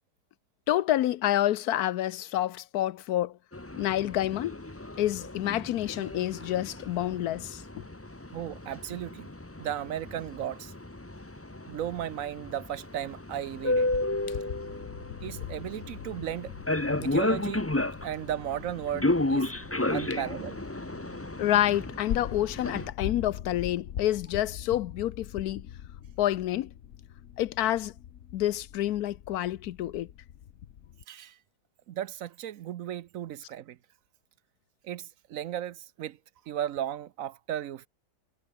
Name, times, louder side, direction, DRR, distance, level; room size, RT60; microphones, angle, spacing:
voice 1, 0.7-3.4 3.8-4.6 5.0-7.8 21.4-25.7 26.2-26.7 27.4-27.9 28.3-30.1, left 13 dB, 80° left, 1.2 m, -28 dB
sound 1, 3.5-22.9, left 2 dB, 10° left, 0.9 m, -33 dB
voice 2, 8.3-9.3 9.6-10.7 11.7-13.9 15.2-16.5 17.0-17.6 18.0-19.5 19.9-20.6 31.1-31.4 31.9-33.8 34.8-36.2 36.5-37.9, right 11 dB, 65° right, 1.0 m, -35 dB
sound 2, 13.5-31.0, left 10 dB, 60° left, 1.2 m, -42 dB
omnidirectional pair, 1.6 m